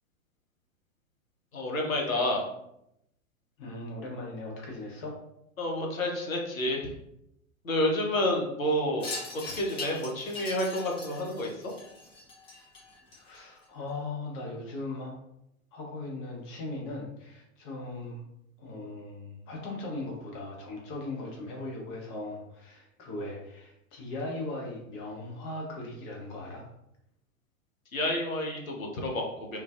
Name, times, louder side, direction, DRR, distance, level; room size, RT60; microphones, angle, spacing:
voice 1, 1.5-2.4 5.6-6.9 7.6-9.1 9.5-11.5 27.9-29.6, left 1 dB, 85° left, 0 dB, 0.7 m, -29 dB
voice 2, 3.6-5.2 13.1-15.2 15.7-18.3 18.6-26.6, left 2 dB, 40° left, 0 dB, 0.8 m, -38 dB
Wind chime, 9.0-13.6, left 3 dB, 15° left, 0.4 m, -41 dB
2.4 x 2.2 x 2.3 m, 0.80 s
figure-of-eight pair, 95°, 40 cm